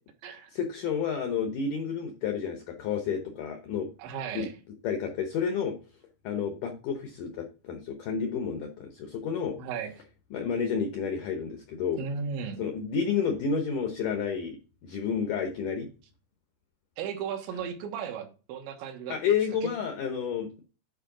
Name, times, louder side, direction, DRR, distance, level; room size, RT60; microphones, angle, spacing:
voice 1, 0.5-3.9 4.4-4.5 4.8-5.8 6.2-9.6 10.3-12.0 12.6-15.9 19.1-20.6, left 6 dB, 80° left, 5 dB, 1.8 m, -30 dB
voice 2, 4.0-4.5 9.6-9.9 12.0-12.6 17.0-19.2 19.6-19.7, right 6 dB, 85° right, 5 dB, 3.5 m, -35 dB
9.8 x 4.6 x 3.7 m, 0.34 s
omnidirectional pair, 5.0 m